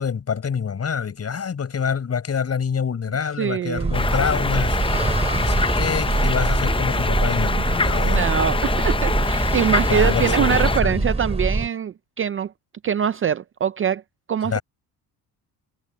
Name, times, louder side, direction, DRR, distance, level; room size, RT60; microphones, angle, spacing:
voice 1, 0.0-4.8 5.3-8.3 9.9-11.1 14.4-14.6, left 6 dB, 40° left, 5.9 m, -26 dB
voice 2, 3.4-4.0 7.6-7.8 8.1-12.5 12.8-14.0 14.3-14.6, right 8 dB, 35° right, 0.5 m, -23 dB
sound 1, 3.8-11.7, right 3 dB, 15° right, 3.9 m, -23 dB
sound 2, 3.9-10.8, left 4 dB, 15° left, 0.6 m, -25 dB
cardioid pair, 120°, 39 cm